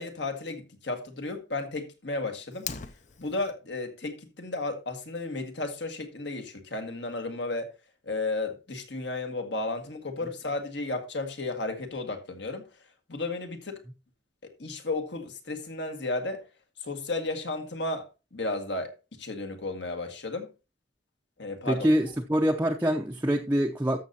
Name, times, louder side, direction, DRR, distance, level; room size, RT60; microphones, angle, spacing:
voice 1, 0.0-2.7 3.2-7.7 8.0-12.7 13.1-13.8 14.4-16.4 16.8-18.1 18.3-20.5 21.4-21.9, left 2 dB, 65° left, 1.8 m, -33 dB
Fire, 2.5-3.5, left 7 dB, 40° left, 0.6 m, -39 dB
voice 2, 21.7-24.0, equal, 10° right, 0.6 m, -25 dB
13.5 x 6.7 x 2.8 m
head